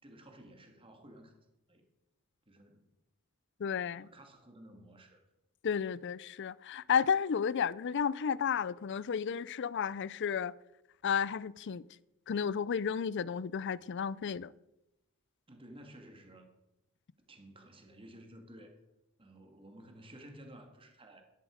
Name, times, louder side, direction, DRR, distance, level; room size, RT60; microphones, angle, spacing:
voice 1, 0.0-1.4 1.7-1.8 2.5-2.9 4.0-5.2 15.5-16.5 17.3-18.8 19.2-21.2, right 1 dB, 25° right, 1.9 m, -54 dB
voice 2, 3.6-4.1 5.6-10.5 11.0-11.8 12.3-14.5, left 7 dB, 55° left, 0.4 m, -32 dB
13.0 x 10.5 x 5.1 m
head